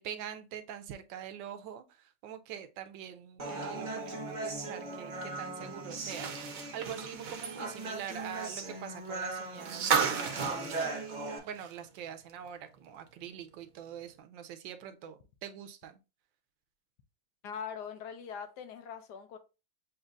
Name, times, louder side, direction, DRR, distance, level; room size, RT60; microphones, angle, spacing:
voice 1, 0.0-11.0 11.4-16.0, right 9 dB, 80° right, 1.3 m, -44 dB
Human voice, 3.4-11.4, right 3 dB, 40° right, 0.6 m, -39 dB
sound 1, 5.9-12.0 12.3-12.4 13.8-13.9, right 6 dB, 60° right, 0.9 m, -35 dB
voice 2, 17.4-19.4, left 7 dB, 70° left, 1.1 m, -42 dB
7.2 x 2.8 x 2.4 m
omnidirectional pair, 2.0 m